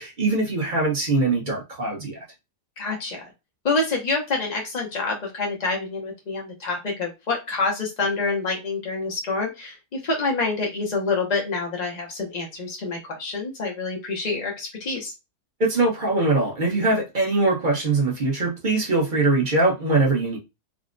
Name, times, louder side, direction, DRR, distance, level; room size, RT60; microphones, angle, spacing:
voice 1, 0.0-2.2 15.6-20.4, right 2 dB, 35° right, 0.9 m, -22 dB
voice 2, 2.8-3.3 3.6-15.1, left 3 dB, 55° left, 0.4 m, -27 dB
3.6 x 2.1 x 2.5 m
omnidirectional pair, 1.7 m